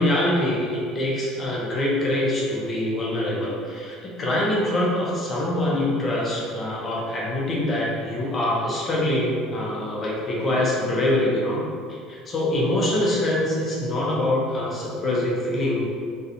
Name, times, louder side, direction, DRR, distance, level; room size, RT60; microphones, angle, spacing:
voice 1, 0.0-11.6 11.9-15.8, left 1 dB, 25° left, -4 dB, 0.7 m, -24 dB
4.2 x 2.3 x 2.6 m, 2.2 s
cardioid pair, 150°, 0 cm